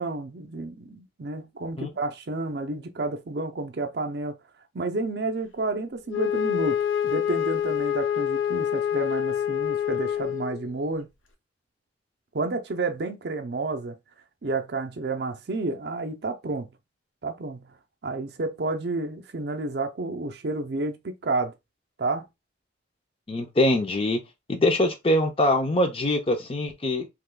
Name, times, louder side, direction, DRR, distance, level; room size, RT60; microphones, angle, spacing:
voice 1, 0.0-4.4 4.7-11.1 12.3-14.0 14.4-16.7 17.2-17.7 18.0-21.5 22.0-22.3, right 3 dB, 55° right, 0.5 m, -30 dB
Wind instrument woodwind instrument, 6.1-10.7, left 9 dB, 90° left, 0.8 m, -26 dB
voice 2, 23.3-24.2 24.5-27.1, left 1 dB, 30° left, 0.5 m, -23 dB
3.5 x 3.1 x 2.2 m
head